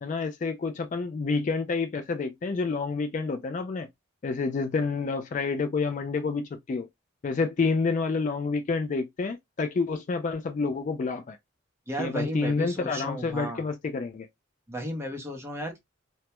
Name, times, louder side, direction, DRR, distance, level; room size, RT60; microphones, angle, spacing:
voice 1, 0.0-3.9 4.2-6.9 7.2-11.4 12.0-14.3, left 4 dB, 35° left, 0.3 m, -28 dB
voice 2, 11.9-13.6 14.7-15.8, equal, 10° right, 0.6 m, -34 dB
2.1 x 2.1 x 2.8 m
head